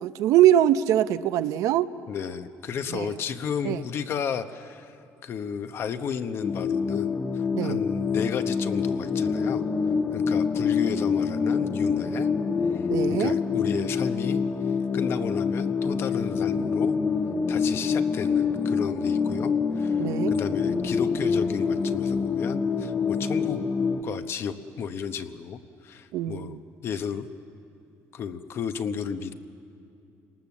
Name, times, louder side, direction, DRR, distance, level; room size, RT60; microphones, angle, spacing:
voice 1, 0.0-1.9 2.9-3.1 3.6-3.8 7.5-7.9 12.9-13.3 20.0-20.3 26.1-26.6, right 12 dB, 75° right, 13 dB, 0.7 m, -22 dB
voice 2, 2.1-5.0 5.2-9.6 10.1-12.3 12.7-12.8 13.1-14.4 14.9-17.0 17.5-20.0 20.3-23.6 24.0-27.3 28.1-29.3, left 7 dB, 45° left, 10 dB, 1.0 m, -33 dB
sound 1, 6.4-24.0, left 5 dB, 25° left, 0.7 m, -26 dB
29.5 x 19.0 x 7.2 m, 2.7 s
cardioid pair, 145°, 6 cm